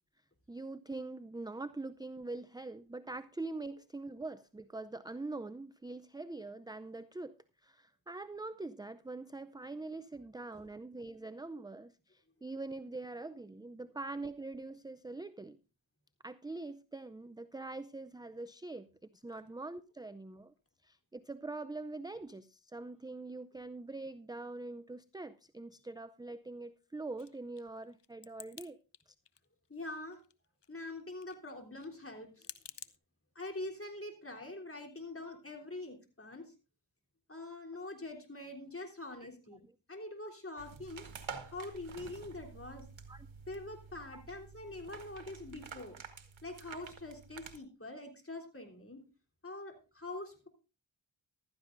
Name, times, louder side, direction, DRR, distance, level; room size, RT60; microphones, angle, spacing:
voice 1, 0.5-7.4 7.6-15.6 16.2-18.9 19.1-20.5 20.8-28.8 29.1-29.2 43.1-43.3 44.1-44.2, right 2 dB, 10° right, 13 dB, 0.5 m, -44 dB
sound 1, 27.2-28.7 28.9-29.7 29.9-33.0, left 9 dB, 60° left, 0.8 m, -51 dB
voice 2, 29.7-30.2 30.7-32.5 33.4-36.5 37.3-39.6 39.9-41.1 41.4-42.9 43.5-46.0 46.4-49.0 49.4-50.5, left 2 dB, 30° left, 2 dB, 3.5 m, -44 dB
sound 2, 40.6-47.6, right 5 dB, 80° right, 1.6 m, -49 dB
15.0 x 12.5 x 2.6 m, 0.33 s
cardioid pair, 45°, 46 cm